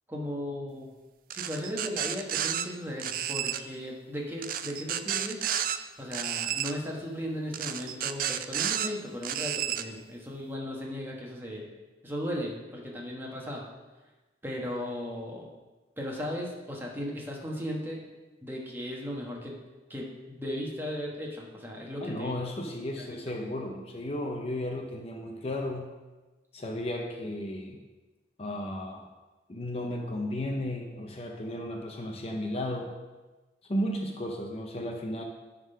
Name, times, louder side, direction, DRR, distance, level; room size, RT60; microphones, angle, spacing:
voice 1, 0.1-0.9 1.3-5.4 6.0-11.6 12.0-13.6 14.4-15.5 16.0-18.0 18.4-19.6 19.9-22.3 23.0-23.2, equal, 10° right, -2 dB, 1.2 m, -36 dB
sound 1, 1.3-2.6 3.0-3.6 4.4-5.8 6.1-6.7 7.5-8.9 9.2-9.8, right 10 dB, 50° right, 0.4 m, -31 dB
voice 2, 22.0-25.9 26.5-27.8 28.4-29.1 29.5-33.0 33.7-35.2, left 1 dB, 35° left, 2 dB, 0.6 m, -34 dB
10.5 x 3.7 x 5.5 m, 1.2 s
head